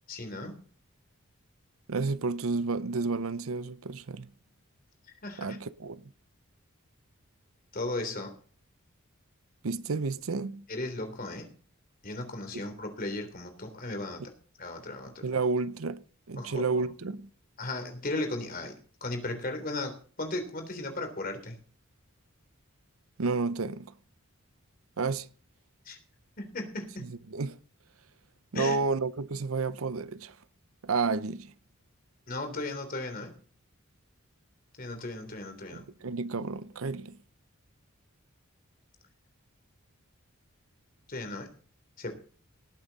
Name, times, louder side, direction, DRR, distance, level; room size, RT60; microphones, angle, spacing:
voice 1, 0.1-0.6 5.2-5.6 7.7-8.3 10.7-11.5 12.0-14.2 14.6-15.2 16.4-16.8 17.6-21.6 25.9-26.0 26.4-27.1 28.5-28.8 32.3-33.3 34.8-35.9 41.1-41.5 42.0-42.1, left 2 dB, 40° left, 3.4 m, -36 dB
voice 2, 1.9-4.3 5.4-6.0 9.6-10.6 12.5-12.6 15.2-16.0 16.3-17.3 23.2-23.9 25.0-25.3 27.0-27.6 28.5-30.4 30.8-31.5 35.7-37.2, right 4 dB, 80° right, 0.7 m, -31 dB
18.5 x 8.9 x 4.1 m
head